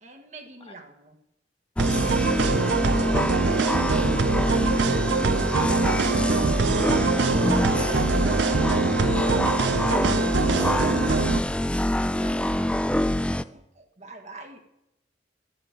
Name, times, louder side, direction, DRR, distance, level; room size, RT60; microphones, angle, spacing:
voice 1, 0.0-1.2 4.8-5.0 6.6-10.4 13.4-14.6, right 2 dB, 40° right, 4 dB, 1.5 m, -44 dB
sound 1, 1.8-13.4, left 1 dB, 5° left, 0.4 m, -25 dB
sound 2, 1.8-11.4, right 5 dB, 85° right, 0.5 m, -24 dB
voice 2, 3.1-4.2 12.2-12.9, left 1 dB, 30° left, 5 dB, 1.8 m, -47 dB
12.5 x 7.8 x 8.9 m, 0.83 s
head